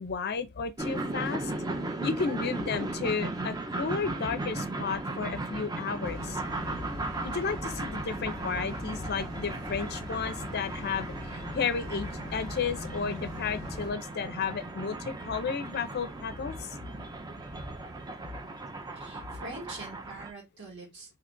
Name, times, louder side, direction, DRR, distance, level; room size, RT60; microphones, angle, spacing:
voice 1, 0.0-1.5 2.0-6.4 7.2-16.8, left 5 dB, 45° left, 0.4 m, -33 dB
sound 1, 0.8-20.3, right 2 dB, 15° right, 0.4 m, -37 dB
sound 2, 6.0-13.9, left 2 dB, 15° left, 1.1 m, -41 dB
voice 2, 19.0-21.2, right 2 dB, 50° right, 1.3 m, -44 dB
2.7 x 2.3 x 3.7 m
head